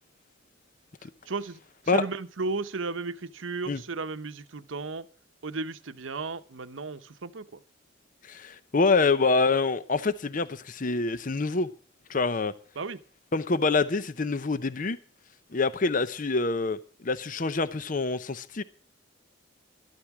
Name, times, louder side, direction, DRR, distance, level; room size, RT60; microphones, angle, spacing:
voice 1, 1.3-5.1 5.4-7.6 12.8-13.0, right 3 dB, 85° right, 0.9 m, -34 dB
voice 2, 8.3-11.7 12.1-12.5 13.3-15.0 15.5-16.8 17.0-18.6, left 3 dB, 45° left, 0.7 m, -26 dB
13.0 x 12.0 x 6.0 m
head